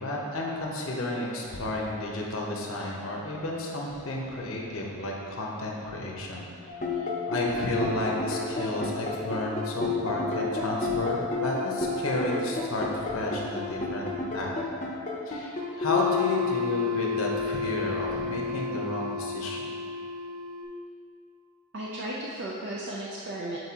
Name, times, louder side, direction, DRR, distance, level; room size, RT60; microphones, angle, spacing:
voice 1, 0.0-6.5 6.9-14.6 15.3-19.7, left 1 dB, 70° left, -2 dB, 0.9 m, -32 dB
sound 1, 6.7-20.6, left 4 dB, 35° left, 0.7 m, -30 dB
voice 2, 21.7-23.6, right 1 dB, 55° right, -5 dB, 0.5 m, -35 dB
7.9 x 4.4 x 2.9 m, 2.5 s
head